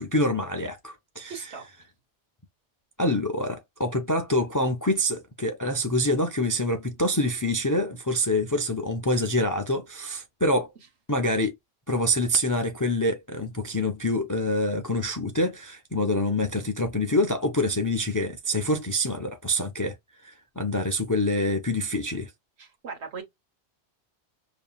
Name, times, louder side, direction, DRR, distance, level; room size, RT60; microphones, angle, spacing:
voice 1, 0.0-1.4 3.0-10.7 11.1-11.5 11.9-19.9 20.2-22.3, left 1 dB, 25° left, 0.4 m, -26 dB
voice 2, 1.3-1.7 22.6-23.2, right 5 dB, 70° right, 1.5 m, -38 dB
5.1 x 2.8 x 2.3 m
omnidirectional pair, 1.2 m